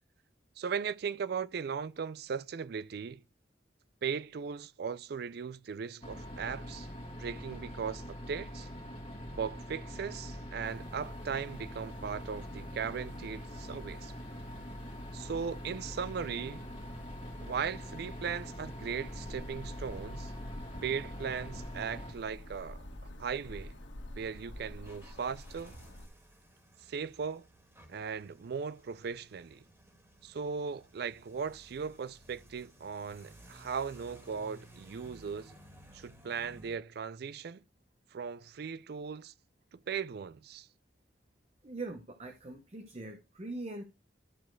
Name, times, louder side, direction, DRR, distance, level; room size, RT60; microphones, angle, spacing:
voice 1, 0.6-3.2 4.0-6.9 7.2-8.7 9.3-14.1 15.1-16.6 17.4-20.3 20.8-22.8 23.2-23.7 24.2-25.7 26.9-27.5 27.9-29.6 30.2-35.6 35.9-37.6 38.1-39.3 39.7-40.7, right 6 dB, 60° right, 0.4 m, -38 dB
sound 1, 6.0-22.1, equal, 30° left, 2.0 m, -44 dB
sound 2, 10.6-26.1, left 1 dB, 85° left, 1.5 m, -50 dB
sound 3, 24.8-36.8, right 1 dB, 15° right, 2.2 m, -57 dB
voice 2, 41.6-43.8, right 2 dB, 35° right, 0.8 m, -42 dB
12.5 x 4.2 x 4.5 m
head